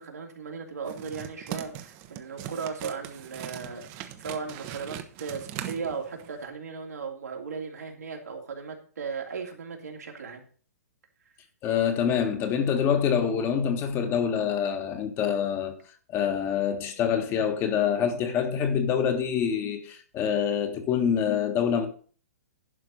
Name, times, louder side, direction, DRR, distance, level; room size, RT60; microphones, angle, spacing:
voice 1, 0.0-10.4, right 5 dB, 80° right, 2.9 m, -37 dB
sound 1, 0.8-6.4, right 11 dB, 35° right, 1.1 m, -40 dB
voice 2, 11.6-15.8 16.1-21.9, left 8 dB, 30° left, 1.5 m, -26 dB
11.5 x 4.7 x 6.4 m
hypercardioid pair, 130°, 9 cm